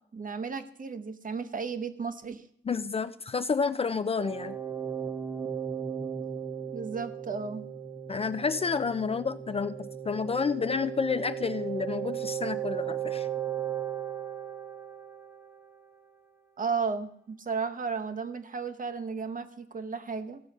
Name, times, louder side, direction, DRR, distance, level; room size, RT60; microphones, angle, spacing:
voice 1, 0.1-2.4 6.7-7.7 16.6-20.4, right 5 dB, 45° right, 9 dB, 0.8 m, -34 dB
voice 2, 2.6-4.6 8.1-13.3, left 5 dB, 30° left, 12 dB, 0.4 m, -30 dB
sound 1, 4.2-15.8, right 9 dB, 15° right, 0.8 m, -36 dB
15.5 x 6.2 x 5.3 m, 0.69 s
wide cardioid pair, 115°, 20 cm